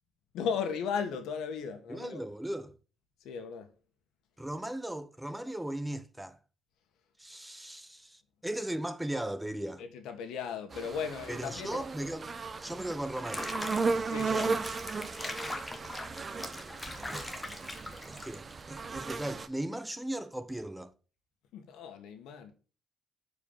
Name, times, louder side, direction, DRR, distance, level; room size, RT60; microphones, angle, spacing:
voice 1, 0.3-2.3 3.2-3.7 9.8-11.8 14.1-14.7 21.5-22.5, left 6 dB, 85° left, 1.6 m, -36 dB
voice 2, 1.9-2.7 4.4-6.4 7.2-9.8 11.3-12.3 12.6-13.5 17.1-17.3 18.0-20.9, right 1 dB, 10° right, 0.9 m, -37 dB
sound 1, 10.7-19.5, right 4 dB, 35° right, 0.9 m, -36 dB
Water / Bathtub (filling or washing), 13.1-18.6, left 2 dB, 15° left, 1.4 m, -41 dB
7.2 x 4.9 x 6.8 m
cardioid pair, 90°, 0 cm